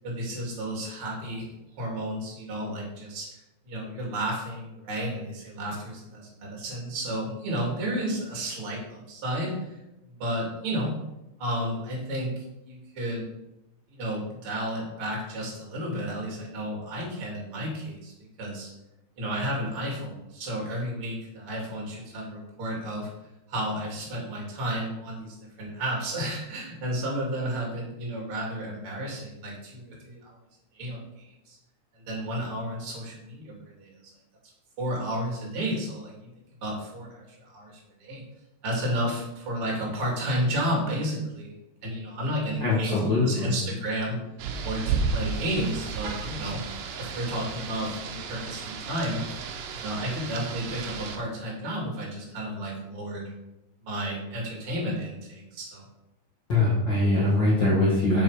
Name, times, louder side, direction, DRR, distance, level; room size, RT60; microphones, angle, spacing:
voice 1, 0.0-1.5 1.8-3.3 3.6-9.8 10.0-10.9 11.4-13.3 13.9-18.1 18.4-18.7 19.2-23.1 23.5-30.4 30.7-31.6 31.9-33.9 34.8-36.3 36.6-38.2 38.6-41.5 41.8-44.2 44.6-46.6 47.0-49.2 49.7-53.3 53.8-55.8, right 1 dB, 35° right, -2 dB, 2.7 m, -32 dB
voice 2, 42.6-43.6 56.5-58.2, left 2 dB, 75° left, -7 dB, 1.0 m, -22 dB
Rain, 44.4-51.2, right 5 dB, 90° right, 1.9 m, -33 dB
7.4 x 7.4 x 5.1 m, 0.92 s
omnidirectional pair, 5.4 m